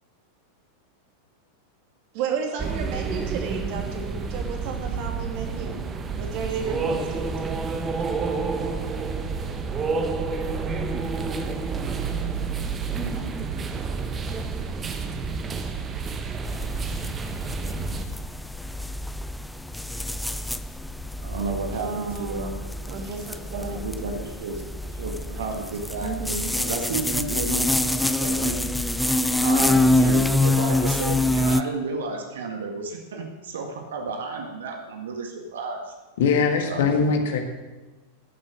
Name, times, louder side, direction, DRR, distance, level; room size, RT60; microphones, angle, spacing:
voice 1, 2.1-5.8 6.1-7.2 21.7-22.5 22.9-23.8 26.0-26.5, right 5 dB, 45° right, 3 dB, 2.4 m, -32 dB
sound 1, 2.6-18.1, right 4 dB, 20° right, 1.0 m, -29 dB
sound 2, 16.4-31.6, left 2 dB, 5° left, 0.5 m, -26 dB
voice 2, 21.2-22.5 23.5-24.6 24.9-26.1 26.5-28.6 29.4-35.9 36.7-36.9, right 4 dB, 60° right, 3 dB, 1.7 m, -32 dB
voice 3, 36.2-37.4, left 5 dB, 55° left, 5 dB, 1.8 m, -21 dB
14.0 x 7.7 x 6.5 m, 1.2 s
figure-of-eight pair, 90°, 0 cm